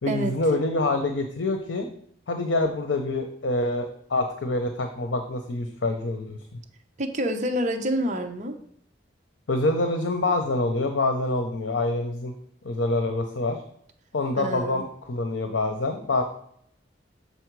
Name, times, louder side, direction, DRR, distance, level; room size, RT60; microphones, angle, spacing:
voice 1, 0.0-1.9 2.3-6.4 9.5-12.3 12.6-13.6 14.1-16.2, left 2 dB, 80° left, 5 dB, 0.7 m, -26 dB
voice 2, 7.0-8.6 14.4-14.8, equal, 40° right, 4 dB, 0.8 m, -27 dB
6.8 x 4.3 x 4.6 m, 0.70 s
head